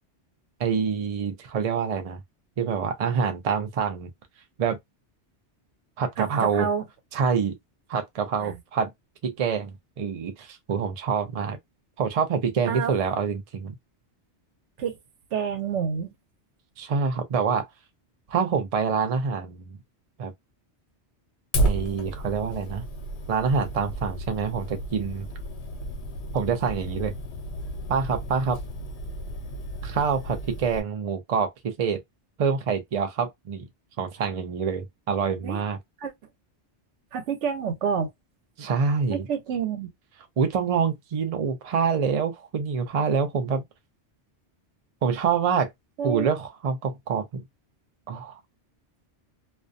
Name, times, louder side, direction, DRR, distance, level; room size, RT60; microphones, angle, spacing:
voice 1, 0.6-2.2 2.6-4.1 4.6-4.8 6.0-6.7 7.1-7.6 7.9-8.9 9.2-11.6 12.0-13.7 16.8-17.7 18.3-19.8 20.2-20.3 21.6-22.8 23.3-25.3 26.3-27.1 27.9-28.6 29.8-32.0 32.4-33.7 34.0-35.8 38.6-39.3 40.4-43.6 45.0-45.7 46.0-47.4 48.1-48.4, right 6 dB, 45° right, 0.5 m, -26 dB
voice 2, 6.2-6.8 8.4-8.6 12.7-12.9 14.8-15.0 15.3-16.1 35.4-35.6 36.0-36.1 37.1-38.1 39.1-39.9 46.0-46.3, right 7 dB, 80° right, 1.0 m, -28 dB
Fire, 21.5-30.8, right 1 dB, 70° left, 1.0 m, -32 dB
2.4 x 2.2 x 2.5 m
omnidirectional pair, 1.2 m